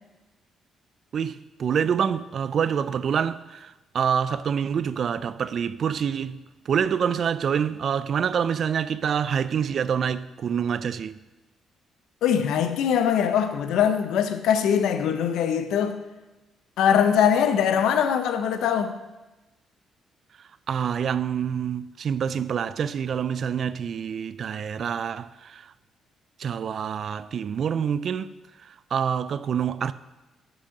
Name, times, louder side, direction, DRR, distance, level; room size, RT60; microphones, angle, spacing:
voice 1, 1.1-6.4 6.7-11.2 20.7-25.7 26.4-28.3 28.6-29.9, right 7 dB, 55° right, 0.3 m, -26 dB
voice 2, 12.2-16.0 16.8-19.0, left 8 dB, 80° left, 0.6 m, -22 dB
6.3 x 6.1 x 6.5 m
cardioid pair, 90°, 0 cm